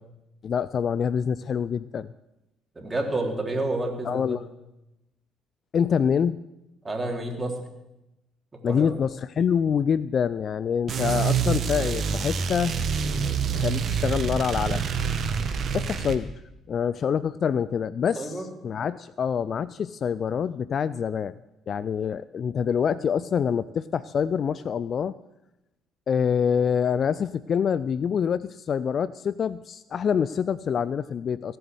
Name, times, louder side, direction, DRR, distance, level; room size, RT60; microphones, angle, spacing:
voice 1, 0.4-2.1 4.0-4.5 5.7-6.4 8.6-12.9 13.3-14.8 15.7-16.3 16.7-21.3 21.7-25.1 26.1-31.6, left 7 dB, 50° left, 17 dB, 0.4 m, -26 dB
voice 2, 2.8-4.4 6.8-7.6 8.7-8.9 18.2-18.4, right 2 dB, 25° right, 1 dB, 3.9 m, -29 dB
sound 1, 10.9-16.2, right 6 dB, 50° right, 1.5 m, -26 dB
17.0 x 7.8 x 7.8 m, 0.94 s
figure-of-eight pair, 50°, 0 cm